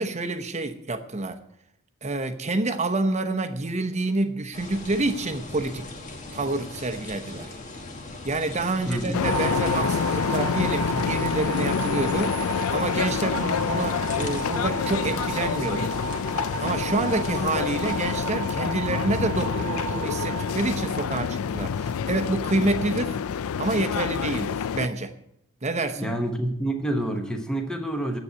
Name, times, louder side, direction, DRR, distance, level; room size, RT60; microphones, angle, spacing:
voice 1, 0.0-1.4 2.0-5.9 6.3-7.5 8.2-12.4 12.7-15.9 16.6-23.2 23.6-25.1 25.6-26.1, right 2 dB, 30° right, 0.9 m, -28 dB
sound 1, 4.5-18.2, left 2 dB, 35° left, 1.6 m, -40 dB
voice 2, 8.9-9.2 26.0-28.2, right 1 dB, 5° left, 1.1 m, -28 dB
sound 2, 9.1-24.9, left 7 dB, 70° left, 0.4 m, -27 dB
sound 3, 9.2-21.4, right 9 dB, 85° right, 1.1 m, -34 dB
10.0 x 8.1 x 9.4 m
head